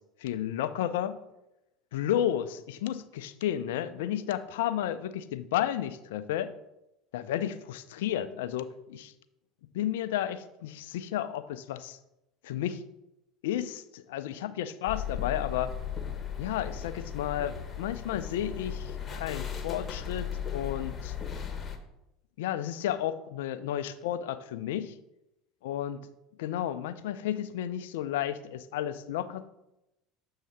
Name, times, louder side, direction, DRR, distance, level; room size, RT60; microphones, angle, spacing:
voice 1, 0.2-1.2 1.9-6.5 7.1-9.1 9.7-12.0 12.4-12.8 13.4-15.7 16.4-21.1 22.4-24.9 25.6-26.0 26.4-29.5, left 11 dB, 80° left, 12 dB, 0.4 m, -32 dB
sound 1, 14.9-21.8, left 8 dB, 35° left, 0.9 m, -36 dB
7.4 x 2.8 x 5.6 m, 0.90 s
hypercardioid pair, 80°, 0 cm